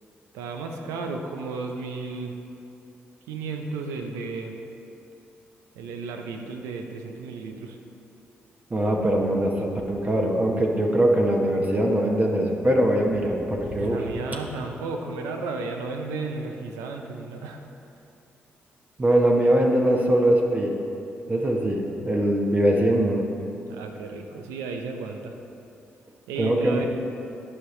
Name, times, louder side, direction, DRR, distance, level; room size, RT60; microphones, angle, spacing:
voice 1, 0.3-2.4 3.3-4.6 5.7-7.8 13.8-17.6 23.7-25.4 26.3-26.9, right 3 dB, 90° right, 4 dB, 0.6 m, -33 dB
voice 2, 8.7-14.0 19.0-20.7 21.3-23.2 26.4-26.9, right 1 dB, 35° right, 0 dB, 1.0 m, -22 dB
12.5 x 5.0 x 3.2 m, 2.7 s
supercardioid pair, 50°, 5 cm